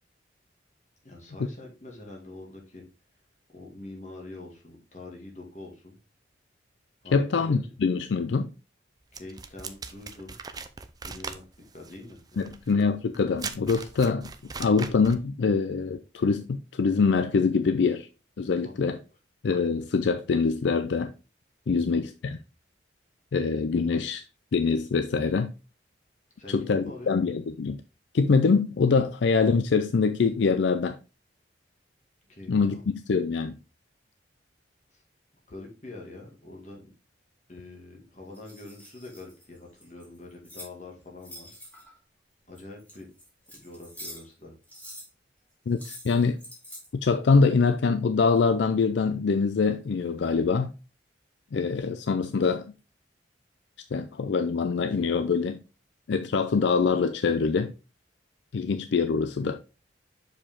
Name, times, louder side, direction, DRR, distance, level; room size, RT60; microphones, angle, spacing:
voice 1, 1.0-2.8 3.5-5.9 7.0-7.6 9.1-10.3 11.0-11.4 11.7-12.5 18.6-18.7 21.7-22.0 26.4-27.1 32.3-32.8 34.9-35.0 35.5-36.9 37.5-41.6 42.5-43.1 43.5-44.5, left 2 dB, 40° left, 2.1 m, -44 dB
voice 2, 7.1-8.5 12.4-14.3 14.6-18.1 18.4-19.0 19.4-21.1 21.7-22.4 23.3-24.2 24.5-25.5 26.5-27.8 28.1-31.0 32.5-33.6 45.7-46.4 47.0-50.7 51.5-52.6 53.9-55.6 56.1-57.7 58.5-59.6, left 4 dB, 70° left, 0.4 m, -24 dB
sound 1, 9.1-15.3, right 5 dB, 20° right, 0.4 m, -40 dB
sound 2, 38.3-40.7 41.2-42.0 42.5-44.3 44.6-45.1 45.7-46.9, equal, 10° left, 2.2 m, -45 dB
6.6 x 5.0 x 3.6 m
head